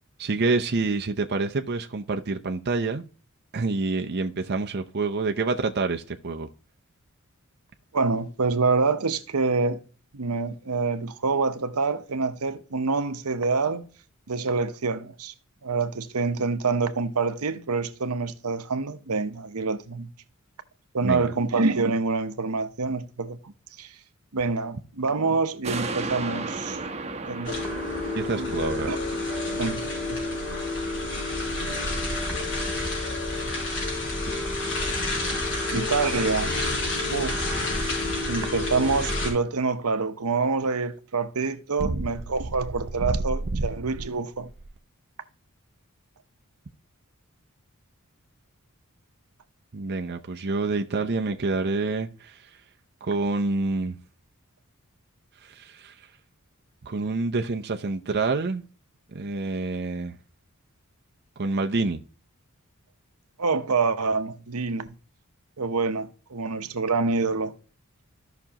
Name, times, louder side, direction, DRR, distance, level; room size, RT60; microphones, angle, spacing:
voice 1, 0.2-3.0 3.5-6.5 21.0-21.3 28.1-28.9 41.8-42.1 43.0-43.2 43.5-43.7 49.7-52.6 53.0-54.0 55.4-56.1 56.8-58.6 59.1-60.2 61.4-62.0, right 3 dB, 50° right, 0.7 m, -27 dB
voice 2, 7.9-9.8 10.1-13.8 14.3-15.3 15.6-20.1 20.9-23.4 23.8-23.9 24.3-26.8 27.2-27.6 28.3-28.5 28.9-29.0 29.6-29.8 30.1-30.4 34.3-34.4 35.7-36.6 37.1-37.7 38.3-44.5 63.4-64.9 65.6-67.5, right 4 dB, 80° right, 1.0 m, -26 dB
sound 1, 25.6-32.3 32.7-32.8, right 3 dB, 30° right, 1.0 m, -36 dB
sound 2, 27.5-39.3, left 2 dB, 60° left, 5.4 m, -29 dB
15.0 x 6.0 x 2.9 m
head